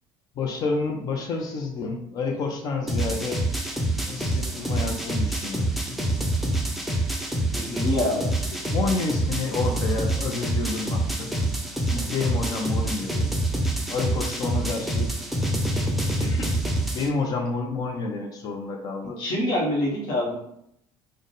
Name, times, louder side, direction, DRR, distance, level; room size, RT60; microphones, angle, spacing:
voice 1, 0.4-3.4 4.0-5.7 8.7-11.3 11.9-13.3 13.9-15.3 16.2-16.5 16.9-19.2, left 3 dB, 45° left, 2 dB, 0.5 m, -29 dB
sound 1, 2.9-17.1, right 1 dB, ahead, 0.4 m, -26 dB
voice 2, 7.5-8.3 19.2-20.4, left 1 dB, 65° left, -3 dB, 1.1 m, -25 dB
3.4 x 2.1 x 3.9 m, 0.75 s
cardioid pair, 125°, 9 cm